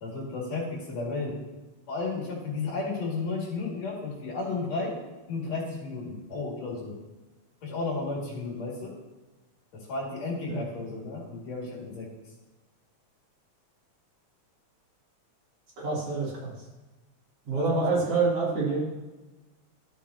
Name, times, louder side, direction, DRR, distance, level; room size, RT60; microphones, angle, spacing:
voice 1, 0.0-1.3 1.9-4.9 5.3-6.9 7.6-8.9 9.7-12.1 17.5-17.8, left 3 dB, 65° left, -3 dB, 3.4 m, -33 dB
voice 2, 15.8-16.5 17.5-18.8, right 3 dB, 55° right, -5 dB, 3.1 m, -27 dB
13.0 x 7.4 x 2.8 m, 1.2 s
omnidirectional pair, 3.3 m